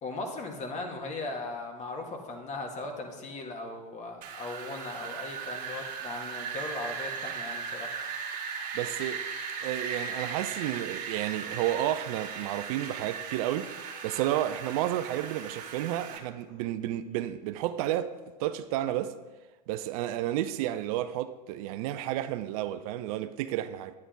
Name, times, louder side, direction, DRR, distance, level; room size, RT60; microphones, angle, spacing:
voice 1, 0.0-7.9, left 2 dB, 35° left, 2.0 m, -38 dB
Wind, 4.2-16.2, right 6 dB, 40° right, 1.9 m, -37 dB
voice 2, 8.7-9.2 9.6-19.2 19.7-23.9, right 13 dB, 55° right, 0.6 m, -31 dB
10.0 x 9.7 x 3.9 m
hypercardioid pair, 95°, 21 cm